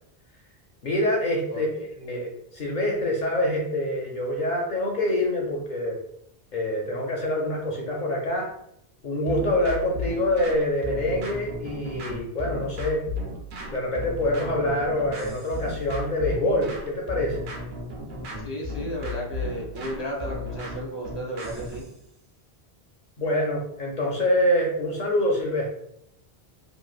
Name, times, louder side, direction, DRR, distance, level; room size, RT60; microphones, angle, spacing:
voice 1, 0.8-6.0 6.5-8.5 9.0-13.1 13.7-17.5 23.2-25.7, left 1 dB, 55° left, -1 dB, 0.6 m, -26 dB
voice 2, 1.5-1.8 18.4-21.9, equal, 15° right, -2 dB, 0.5 m, -34 dB
sound 1, 9.3-21.9, left 2 dB, 60° right, 0.7 m, -35 dB
3.1 x 2.3 x 2.3 m, 0.76 s
omnidirectional pair, 1.0 m